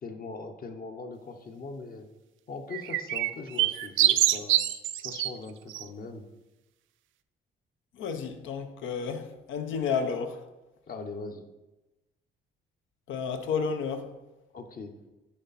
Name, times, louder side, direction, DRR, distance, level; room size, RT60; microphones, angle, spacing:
voice 1, 0.0-2.1 2.5-4.6 5.0-6.2 10.9-11.4 14.5-14.9, left 4 dB, 45° left, 0.9 m, -40 dB
sound 1, 2.7-5.3 5.7-5.8, right 13 dB, 75° right, 0.4 m, -25 dB
voice 2, 7.9-10.4 13.1-14.1, left 6 dB, 80° left, 0.7 m, -31 dB
9.5 x 3.4 x 4.1 m
cardioid pair, 90°, 20 cm